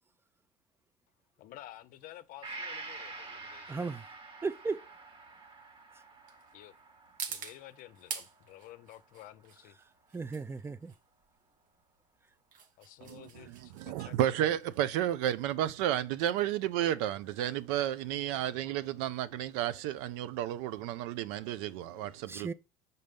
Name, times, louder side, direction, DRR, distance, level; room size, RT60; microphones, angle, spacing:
voice 1, 1.4-3.9 6.5-6.7 7.3-9.8 12.8-14.2, left 14 dB, 60° left, 0.6 m, -51 dB
sound 1, 1.6-18.2, right 6 dB, 55° right, 1.0 m, -48 dB
Gong, 2.4-10.1 10.5-10.6, right 3 dB, 35° right, 1.3 m, -48 dB
voice 2, 3.7-4.1 4.4-4.8 10.1-10.9 22.3-22.5, right 4 dB, 15° right, 0.5 m, -35 dB
voice 3, 13.0-22.5, right 12 dB, 75° right, 0.5 m, -32 dB
5.4 x 4.0 x 5.2 m
supercardioid pair, 80°, 16 cm